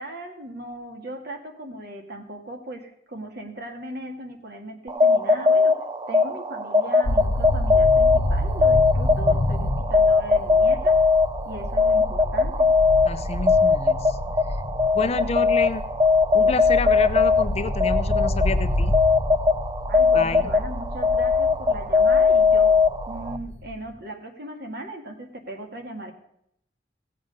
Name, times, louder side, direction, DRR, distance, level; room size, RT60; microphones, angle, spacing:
voice 1, 0.0-5.7 6.1-11.0 11.4-12.7 19.9-22.8 23.1-26.1, right 1 dB, 60° right, 4 dB, 2.0 m, -37 dB
sound 1, 4.9-23.4, left 4 dB, 25° right, 0.4 m, -20 dB
sound 2, 7.0-23.9, left 1 dB, 90° left, 0.8 m, -29 dB
voice 2, 13.0-14.2 14.9-15.8 16.3-18.9 20.1-20.5, left 4 dB, 35° left, 11 dB, 0.5 m, -28 dB
16.5 x 8.0 x 5.3 m, 0.75 s
head